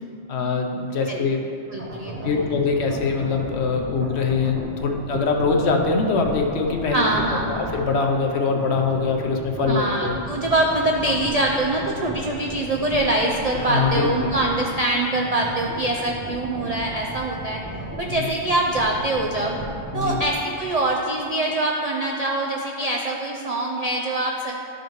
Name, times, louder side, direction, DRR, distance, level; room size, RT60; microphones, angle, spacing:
voice 1, 0.3-1.4 2.2-7.0 7.5-10.2 13.6-14.3 18.2-18.3 19.9-20.2, left 4 dB, 60° left, 2 dB, 0.9 m, -23 dB
sound 1, 1.7-8.1 8.3-14.7 15.0-20.4, right 1 dB, 15° right, 0.7 m, -35 dB
voice 2, 1.7-2.3 6.9-7.6 9.7-17.6 18.0-19.6 19.9-24.5, right 1 dB, 55° right, -1 dB, 0.4 m, -24 dB
11.5 x 5.0 x 3.1 m, 2.6 s
omnidirectional pair, 1.3 m